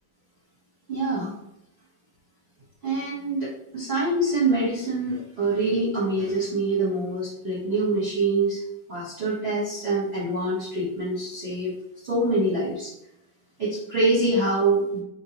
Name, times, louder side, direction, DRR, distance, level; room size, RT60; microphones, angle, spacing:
voice 1, 0.9-1.3 2.8-8.6 8.9-11.7 12.0-12.9 13.6-15.0, right 2 dB, 40° right, -8 dB, 1.1 m, -25 dB
4.6 x 2.7 x 2.9 m, 0.81 s
omnidirectional pair, 1.9 m